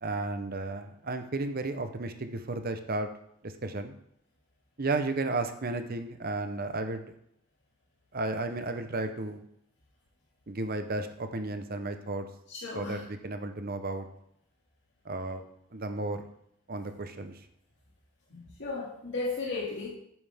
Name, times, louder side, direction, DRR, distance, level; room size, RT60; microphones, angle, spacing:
voice 1, 0.0-3.1 3.4-3.9 4.8-7.1 8.1-9.4 10.5-12.3 12.7-14.1 15.0-15.4 15.7-16.3 16.7-17.4, right 2 dB, 40° right, 8 dB, 0.8 m, -33 dB
voice 2, 12.5-13.0 18.3-19.9, left 3 dB, 55° left, -4 dB, 2.1 m, -35 dB
10.5 x 9.2 x 3.5 m, 0.73 s
head